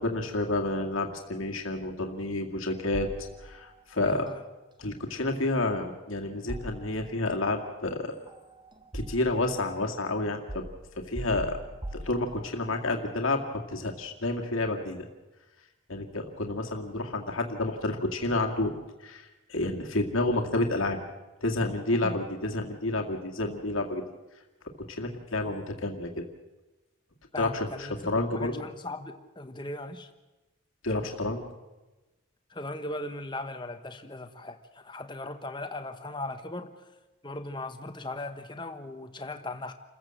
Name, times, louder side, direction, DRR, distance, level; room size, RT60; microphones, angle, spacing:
voice 1, 0.0-3.1 3.4-4.3 4.8-8.1 8.9-10.6 11.0-11.6 11.9-13.4 13.7-15.1 15.9-18.7 19.0-21.0 21.4-24.0 24.8-26.2 27.4-28.7 30.8-31.4, left 2 dB, 75° left, 2 dB, 2.2 m, -30 dB
sound 1, 2.9-3.8 6.5-7.4 8.3-9.6 10.5-12.7, right 1 dB, 20° right, 1.2 m, -40 dB
voice 2, 4.0-4.4 22.0-22.2 27.3-30.1 32.5-36.7 37.2-39.7, left 2 dB, 20° left, 7 dB, 1.4 m, -38 dB
28.5 x 15.0 x 7.7 m, 1.1 s
head